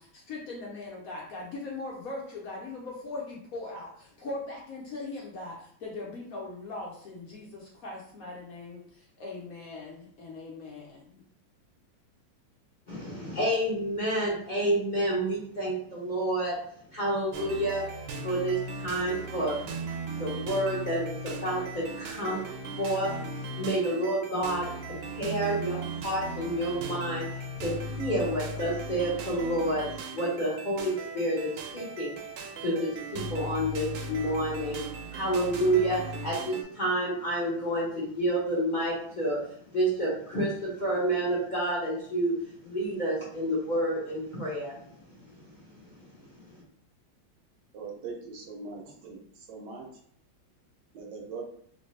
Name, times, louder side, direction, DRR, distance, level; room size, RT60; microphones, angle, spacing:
voice 1, 0.0-11.2, left 2 dB, 65° left, -2 dB, 0.8 m, -40 dB
voice 2, 12.9-16.6 16.9-17.8 18.2-19.6 20.2-22.5 22.8-32.1 32.6-39.5 39.7-45.3 45.5-46.6, right 1 dB, 40° left, -6 dB, 0.7 m, -29 dB
sound 1, 17.3-36.6, right 2 dB, 90° right, 1.4 m, -38 dB
voice 3, 47.7-49.9 50.9-51.4, right 4 dB, 70° right, 0 dB, 1.2 m, -41 dB
3.2 x 2.9 x 3.1 m, 0.63 s
omnidirectional pair, 2.2 m